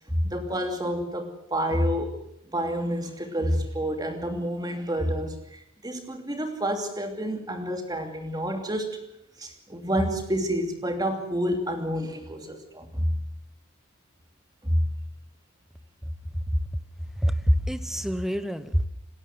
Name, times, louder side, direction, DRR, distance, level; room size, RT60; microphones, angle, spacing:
voice 1, 0.1-2.1 2.5-9.0 9.4-13.2 14.6-14.9, equal, 20° right, 5 dB, 2.8 m, -28 dB
voice 2, 17.2-18.9, equal, ahead, 12 dB, 1.0 m, -25 dB
28.5 x 13.0 x 7.8 m, 0.77 s
head